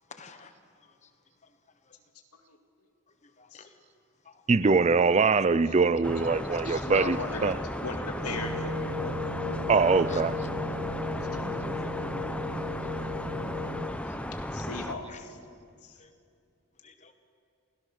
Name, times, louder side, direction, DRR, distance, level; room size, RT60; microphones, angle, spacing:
voice 1, 0.1-0.5 3.4-3.8 4.2-4.4 6.7-6.8 10.1-10.2 12.9-13.2 13.6-14.1 15.1-15.2 16.0-16.1 16.8-17.1, left 5 dB, 30° left, 1.3 m, -50 dB
voice 2, 4.5-7.6 9.7-10.4, right 4 dB, 30° right, 0.4 m, -23 dB
sound 1, 6.0-15.0, left 1 dB, 5° left, 0.8 m, -35 dB
voice 3, 6.6-7.6 7.8-9.1 9.4-9.7 14.5-15.4 15.8-16.0, left 3 dB, 85° left, 2.2 m, -37 dB
sound 2, 8.2-13.8, left 2 dB, 65° right, 5.1 m, -36 dB
28.0 x 17.0 x 6.5 m
head